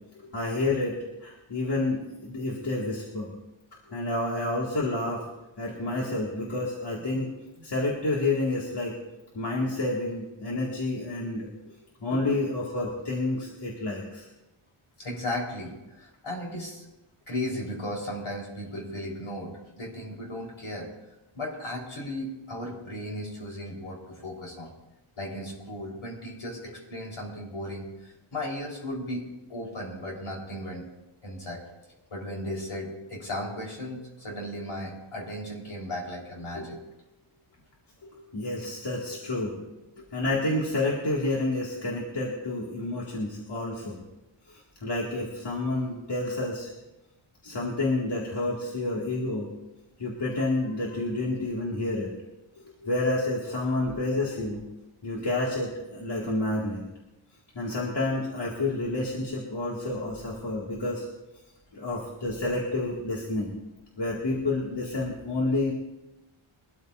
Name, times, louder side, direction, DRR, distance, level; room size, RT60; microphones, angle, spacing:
voice 1, 0.3-1.0 1.2-3.3 3.9-5.2 5.6-7.3 7.6-9.0 9.3-11.5 12.0-14.3 38.3-39.5 40.1-44.0 44.5-46.7 47.4-49.5 50.0-52.1 52.9-54.6 55.0-56.8 57.6-61.1 61.7-63.5 64.0-65.7, left 2 dB, 55° left, -4 dB, 2.2 m, -29 dB
voice 2, 15.0-16.9 17.3-20.9 21.3-24.7 25.2-30.9 31.2-31.7 32.1-36.8 38.0-38.1 39.1-39.2 39.9-40.1 52.6-52.9 53.8-53.9, left 1 dB, 75° left, -2 dB, 4.2 m, -36 dB
22.5 x 13.0 x 2.6 m, 0.99 s
wide cardioid pair, 165°, 50 cm